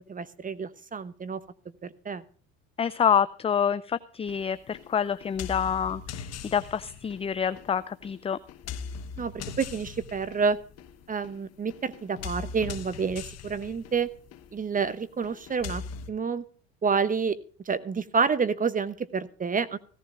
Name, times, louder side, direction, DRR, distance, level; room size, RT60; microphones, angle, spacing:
voice 1, 0.1-1.4 1.8-2.2 9.2-9.3 9.6-10.6 11.1-14.1 14.5-15.8 16.1-16.4 16.8-17.4 17.7-19.8, right 5 dB, 25° right, 15 dB, 0.9 m, -28 dB
voice 2, 2.8-8.4, left 8 dB, 20° left, 15 dB, 0.5 m, -27 dB
sound 1, 4.3-16.1, left 6 dB, 50° left, 1.4 m, -41 dB
16.5 x 14.5 x 2.5 m, 0.42 s
hypercardioid pair, 80°, 33 cm